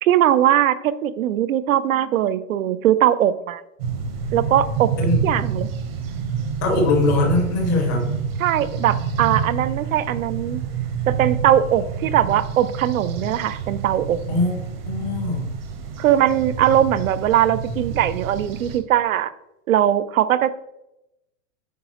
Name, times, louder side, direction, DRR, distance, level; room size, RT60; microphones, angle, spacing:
voice 1, 0.0-3.6 4.3-4.9 5.2-5.7 8.4-10.6 11.1-14.2 16.0-19.3 19.7-20.5, right 11 dB, 75° right, 15 dB, 0.6 m, -20 dB
sound 1, 3.8-18.8, right 6 dB, 45° right, 1.1 m, -28 dB
voice 2, 6.6-8.1 14.3-14.6 14.9-15.5, left 2 dB, 15° left, 1 dB, 0.5 m, -21 dB
8.3 x 4.8 x 3.0 m, 0.87 s
supercardioid pair, 175°, 41 cm